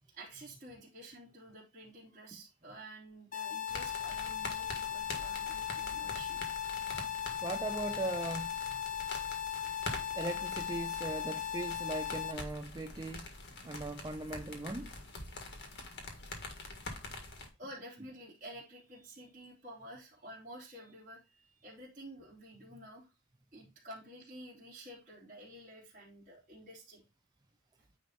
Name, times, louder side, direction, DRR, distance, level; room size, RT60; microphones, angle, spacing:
voice 1, 0.1-6.4 9.4-10.2 17.6-23.1 23.5-27.0, right 1 dB, 35° right, 3.0 m, -51 dB
sound 1, 3.3-12.3, left 9 dB, 35° left, 0.7 m, -38 dB
sound 2, 3.7-17.5, left 2 dB, 55° left, 1.8 m, -45 dB
voice 2, 7.4-8.8 10.2-13.3 13.6-14.9, right 2 dB, 20° right, 0.4 m, -39 dB
9.4 x 3.4 x 4.2 m
head